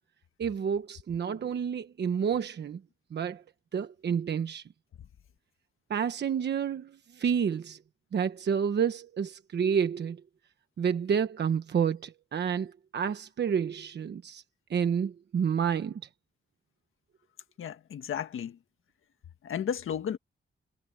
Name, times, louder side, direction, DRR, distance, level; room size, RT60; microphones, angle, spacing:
voice 1, 0.4-2.8 3.1-3.4 3.7-4.6 5.9-7.8 8.1-10.2 10.8-14.4 14.7-16.0, right 7 dB, 55° right, 1.2 m, -29 dB
voice 2, 17.6-18.6 19.4-20.2, left 8 dB, 90° left, 1.6 m, -33 dB
wide cardioid pair, 155°, 21 cm